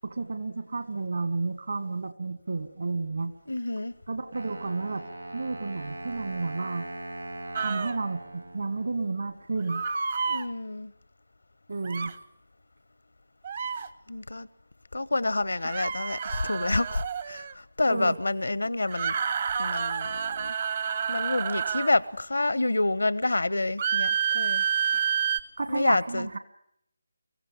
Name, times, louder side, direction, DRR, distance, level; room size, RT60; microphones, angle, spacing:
voice 1, 0.0-3.3 4.1-5.0 5.3-6.9 7.6-9.8 11.7-12.1 17.9-18.2 24.9-25.0 25.6-26.4, right 3 dB, 65° right, 1.9 m, -31 dB
voice 2, 3.5-3.9 10.2-10.9 14.1-14.5 14.9-19.1 19.6-20.5 21.1-24.7 25.7-26.3, left 2 dB, 75° left, 0.7 m, -28 dB
Wind instrument woodwind instrument, 4.3-9.3, right 1 dB, 85° right, 5.1 m, -40 dB
sound 1, 7.5-8.0 9.7-10.4 11.8-12.1 13.4-13.9 15.7-17.5 18.9-22.0 23.8-25.4, right 7 dB, 40° right, 0.8 m, -29 dB
23.5 x 15.5 x 8.6 m
figure-of-eight pair, 150°, 0 cm